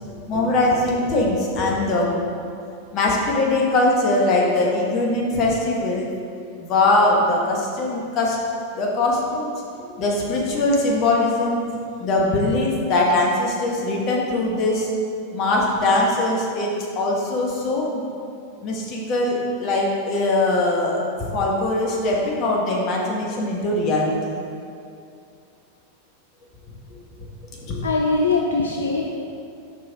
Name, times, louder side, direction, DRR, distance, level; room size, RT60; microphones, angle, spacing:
voice 1, 0.0-2.2 2.9-6.1 6.6-8.4 8.8-9.5 10.0-11.6 12.0-14.9 15.3-18.0 18.6-24.3 26.9-27.0 27.5-27.8, left 2 dB, 35° left, -2 dB, 1.4 m, -21 dB
voice 2, 27.8-29.1, left 3 dB, 70° left, 0 dB, 0.5 m, -21 dB
6.7 x 5.4 x 4.6 m, 2.5 s
figure-of-eight pair, 90°, 0 cm